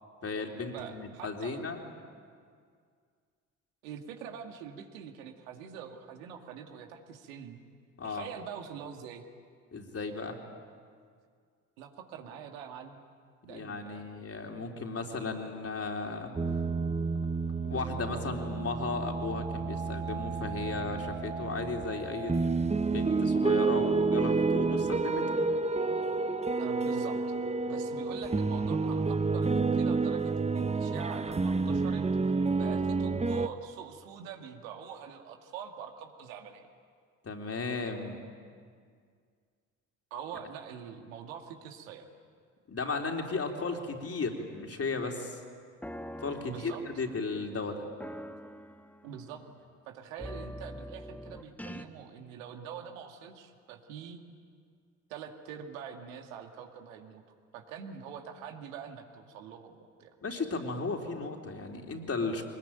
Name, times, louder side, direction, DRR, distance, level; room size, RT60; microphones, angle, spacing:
voice 1, 0.2-1.8 8.0-8.3 9.7-10.4 13.5-16.3 17.6-22.3 22.8-25.2 37.2-38.2 42.7-45.4 46.2-47.8 60.2-62.4, left 3 dB, 35° left, 2 dB, 4.0 m, -35 dB
voice 2, 0.7-1.6 3.8-7.6 8.0-9.2 11.8-13.0 13.4-14.1 26.6-27.2 27.7-36.7 40.1-42.1 46.4-46.8 49.0-49.4 49.9-54.2 55.1-57.2 57.5-60.1, right 8 dB, 75° right, 4 dB, 2.2 m, -44 dB
sound 1, 16.4-33.5, right 4 dB, 15° right, 1.1 m, -29 dB
sound 2, 45.8-47.4 48.0-49.5 50.2-51.8, equal, 5° left, 1.5 m, -44 dB
23.5 x 20.5 x 9.1 m, 2.1 s
hypercardioid pair, 50°, 40 cm